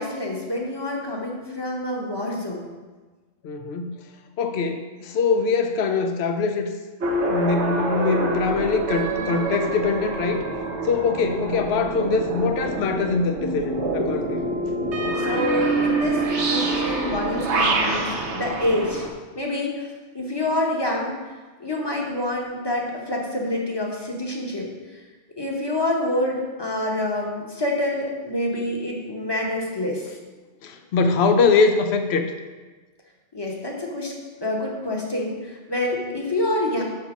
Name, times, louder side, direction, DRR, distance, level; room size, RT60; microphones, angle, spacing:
voice 1, 0.0-2.6 15.2-19.1 19.3-25.0 25.4-30.1 33.3-34.1 34.4-36.8, left 1 dB, 20° left, -1 dB, 1.0 m, -27 dB
voice 2, 3.4-4.0 4.4-6.7 7.3-10.4 10.8-14.5 30.6-32.3, left 4 dB, 65° left, 6 dB, 0.9 m, -23 dB
sound 1, 7.0-19.1, right 2 dB, 70° right, 1.1 m, -26 dB
5.9 x 4.1 x 6.1 m, 1.3 s
omnidirectional pair, 1.2 m